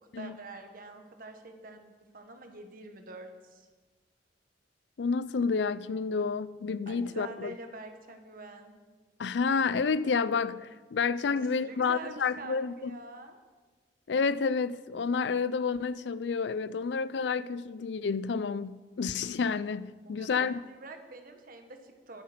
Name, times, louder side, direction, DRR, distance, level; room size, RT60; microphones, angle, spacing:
voice 1, 0.1-3.7 6.9-8.7 11.3-13.4 20.0-22.2, right 2 dB, 55° right, 1.4 m, -46 dB
voice 2, 5.0-7.5 9.2-12.9 14.1-20.6, left 5 dB, 75° left, 0.4 m, -30 dB
12.0 x 10.5 x 5.2 m
head